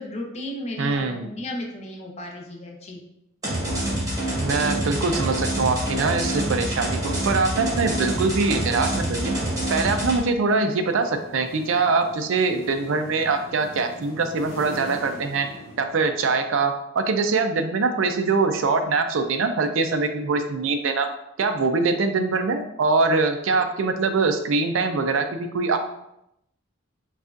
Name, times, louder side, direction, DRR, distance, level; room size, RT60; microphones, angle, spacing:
voice 1, 0.0-3.0, left 1 dB, 35° left, 0 dB, 0.6 m, -34 dB
voice 2, 0.8-1.3 4.4-9.3 9.7-15.5 15.8-21.1 21.4-25.8, right 4 dB, 75° right, 7 dB, 0.4 m, -23 dB
sound 1, 3.4-10.2, right 1 dB, 20° right, 1.0 m, -26 dB
sound 2, 10.0-16.5, left 1 dB, 70° left, 0.9 m, -42 dB
5.0 x 2.4 x 2.5 m, 0.82 s
head